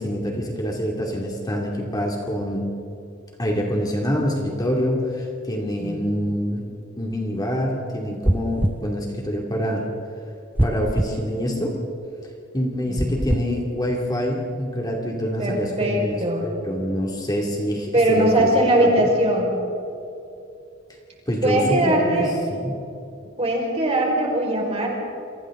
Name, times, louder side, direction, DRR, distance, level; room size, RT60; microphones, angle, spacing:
voice 1, 0.0-2.6 3.4-6.6 7.0-9.8 10.6-11.8 12.5-19.1 21.3-22.7, equal, 20° left, -1 dB, 2.6 m, -26 dB
sound 1, 8.2-8.8 10.6-11.2 13.0-13.5, right 1 dB, 10° right, 0.4 m, -22 dB
voice 2, 12.9-13.2 15.4-16.5 17.9-19.5 21.4-22.3 23.4-24.9, right 1 dB, 30° right, -1 dB, 5.1 m, -21 dB
29.5 x 25.0 x 3.9 m, 2.7 s
head